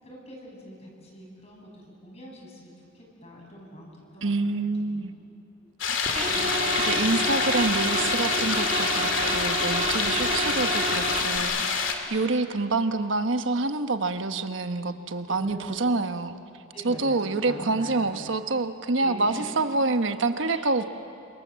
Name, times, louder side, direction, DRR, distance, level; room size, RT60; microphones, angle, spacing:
voice 1, 0.0-5.1 5.6-5.7 10.0-10.5 11.2-11.7 12.1-12.3 14.1-14.6 15.3-15.9 16.7-18.1 19.0-19.6 20.4-20.9, equal, 30° left, -1 dB, 6.9 m, -44 dB
voice 2, 4.2-5.1 6.8-11.8 12.1-16.4 16.8-20.9, right 3 dB, 65° right, 8 dB, 1.2 m, -27 dB
sound 1, 5.8-11.9, left 5 dB, 70° left, 2.6 m, -27 dB
sound 2, 6.0-11.4, right 1 dB, 35° right, 3.4 m, -28 dB
29.5 x 26.5 x 7.5 m, 2.6 s
head